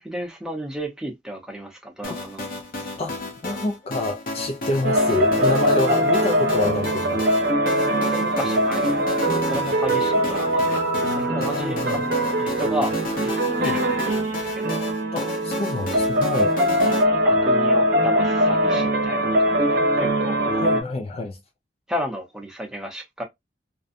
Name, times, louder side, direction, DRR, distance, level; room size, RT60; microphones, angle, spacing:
voice 1, 0.0-2.5 8.1-10.8 11.1-12.1 12.4-12.9 13.2-13.3 13.6-14.8 16.7-16.9 17.2-20.4 21.9-23.2, equal, 5° right, 0.7 m, -33 dB
sound 1, 2.0-17.0, left 2 dB, 50° left, 0.7 m, -32 dB
voice 2, 3.0-7.3 11.4-12.0 13.5-13.8 15.1-16.5 20.5-21.4, left 2 dB, 35° left, 0.3 m, -27 dB
sound 2, 4.8-20.8, equal, 60° right, 0.7 m, -22 dB
2.6 x 2.1 x 2.5 m
head